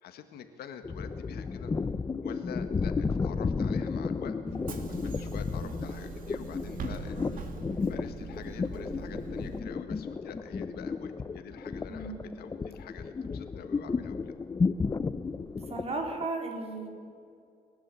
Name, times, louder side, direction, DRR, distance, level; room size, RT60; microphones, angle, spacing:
voice 1, 0.0-1.7 2.2-4.4 4.8-7.5 7.8-14.3, left 8 dB, 70° left, 8 dB, 1.8 m, -46 dB
sound 1, 0.8-16.3, left 4 dB, 20° left, 0.6 m, -33 dB
Bus / Engine, 4.5-9.6, right 4 dB, 55° right, 2.5 m, -41 dB
voice 2, 11.9-12.4 15.7-16.9, right 3 dB, 35° right, 2 dB, 4.2 m, -35 dB
28.0 x 12.0 x 7.8 m, 2.4 s
cardioid pair, 110°, 17 cm